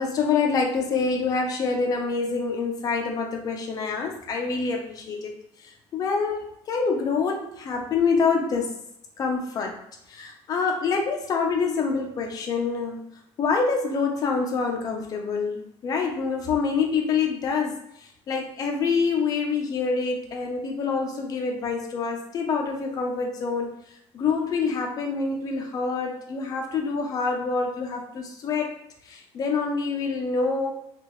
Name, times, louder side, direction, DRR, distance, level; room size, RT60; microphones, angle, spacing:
voice 1, 0.0-8.7 9.2-9.8 10.1-13.0 13.4-23.7 24.1-28.7 29.0-30.7, left 5 dB, 35° left, 2 dB, 0.5 m, -26 dB
3.6 x 2.4 x 3.1 m, 0.76 s
cardioid pair, 170°, 11 cm